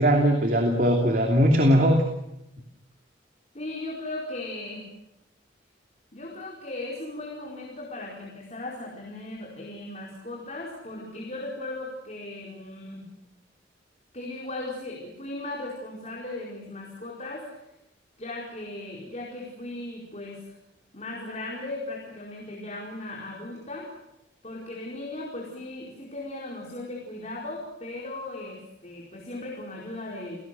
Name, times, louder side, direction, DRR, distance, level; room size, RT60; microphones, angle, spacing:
voice 1, 0.0-2.0, equal, 50° right, 3 dB, 3.0 m, -20 dB
voice 2, 3.5-4.9 6.1-13.0 14.1-17.5 18.2-20.5 20.9-23.9 24.4-30.4, left 2 dB, 40° left, -2 dB, 4.7 m, -37 dB
29.5 x 18.0 x 7.7 m, 0.87 s
head